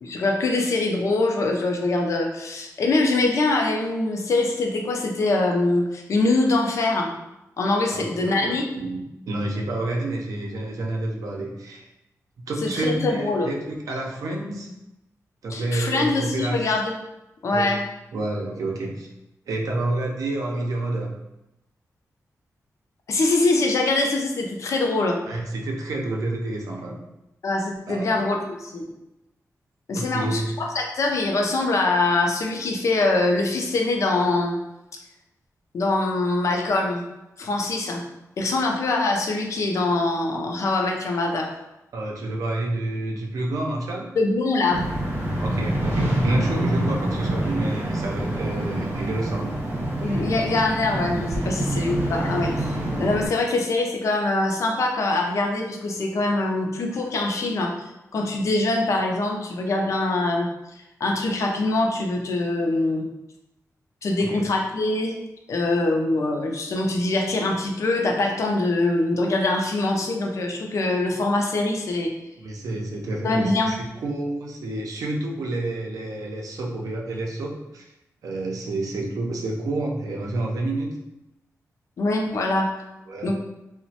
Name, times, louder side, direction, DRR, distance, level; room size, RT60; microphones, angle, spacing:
voice 1, 0.0-7.1 7.6-8.6 12.6-13.5 15.5-16.9 17.4-17.8 23.1-25.2 27.4-28.8 29.9-34.6 35.7-37.0 37.4-38.0 38.4-41.5 44.2-44.8 50.0-57.7 58.1-60.5 61.0-63.1 64.0-65.1 65.5-72.1 73.2-73.8 82.0-82.7 83.2-83.3, left 2 dB, 60° left, 2 dB, 0.4 m, -23 dB
voice 2, 7.9-11.9 12.5-14.7 15.4-16.7 17.5-17.7 18.1-19.1 19.5-21.1 25.2-27.0 27.9-28.2 29.9-30.5 41.9-44.1 45.4-49.6 51.8-51.9 64.3-64.4 72.4-77.9 78.2-81.0 83.1-83.3, right 2 dB, 75° right, -1 dB, 0.5 m, -29 dB
sound 1, 44.7-53.3, right 1 dB, 40° right, 0.8 m, -26 dB
2.9 x 2.1 x 2.8 m, 0.91 s
wide cardioid pair, 140°, 6 cm